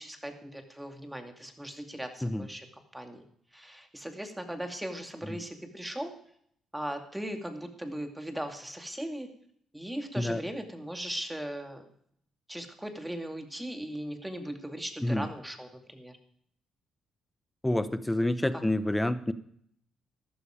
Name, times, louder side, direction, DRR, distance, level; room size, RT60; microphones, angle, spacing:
voice 1, 0.0-2.7 2.9-3.2 3.5-6.1 6.7-9.3 9.7-11.9 12.5-16.2 18.5-18.6, right 1 dB, 5° right, 5 dB, 2.4 m, -38 dB
voice 2, 17.6-19.3, left 1 dB, 10° left, 13 dB, 0.9 m, -28 dB
14.0 x 12.0 x 5.0 m, 0.66 s
cardioid pair, 90°, 0 cm